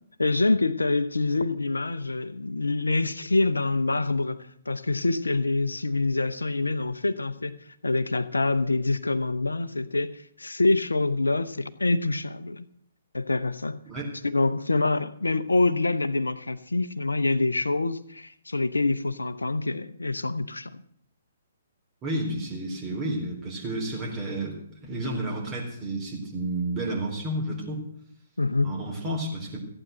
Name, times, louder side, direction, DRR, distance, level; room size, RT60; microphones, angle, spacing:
voice 1, 0.2-7.6 7.8-12.7 13.1-13.8 14.2-20.8 28.4-28.8, left 3 dB, 85° left, 11 dB, 0.8 m, -26 dB
voice 2, 22.0-27.8 28.6-29.6, right 1 dB, 25° right, -1 dB, 4.0 m, -31 dB
15.0 x 8.9 x 7.7 m, 0.66 s
figure-of-eight pair, 130°, 0 cm